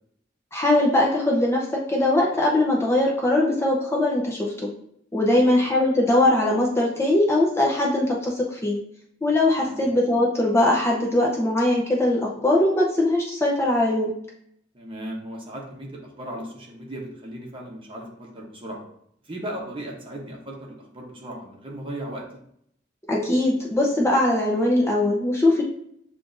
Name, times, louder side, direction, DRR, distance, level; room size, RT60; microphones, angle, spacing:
voice 1, 0.5-4.5 5.1-8.8 9.2-14.1 23.1-25.6, left 1 dB, 15° left, -2 dB, 0.7 m, -21 dB
voice 2, 14.7-18.8 19.3-22.2, right 1 dB, 30° right, -1 dB, 1.0 m, -37 dB
7.5 x 2.5 x 2.6 m, 0.71 s
head